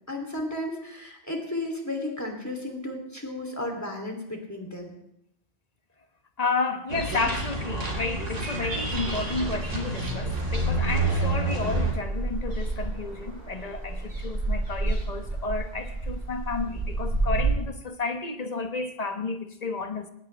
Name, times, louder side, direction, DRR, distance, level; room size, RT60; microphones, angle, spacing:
voice 1, 0.1-4.9, left 1 dB, 15° left, 3.1 m, -33 dB
voice 2, 6.4-20.1, left 3 dB, 35° left, 1.3 m, -31 dB
sound 1, 6.9-11.9, right 2 dB, 85° right, 3.0 m, -29 dB
sound 2, 8.9-17.5, right 2 dB, 50° right, 7.4 m, -31 dB
20.5 x 18.0 x 3.4 m
omnidirectional pair, 1.2 m